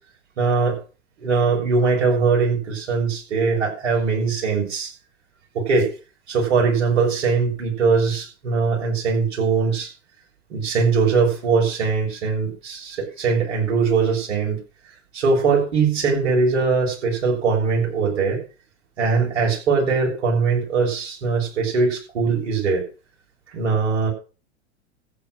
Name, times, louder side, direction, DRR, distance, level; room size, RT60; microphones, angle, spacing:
voice 1, 0.4-0.8 1.2-4.9 5.5-5.9 6.3-9.9 10.5-14.6 15.1-18.4 19.0-22.8 23.5-24.1, right 4 dB, 60° right, -1 dB, 6.7 m, -21 dB
14.5 x 8.4 x 6.4 m, 0.36 s
figure-of-eight pair, 90°, 37 cm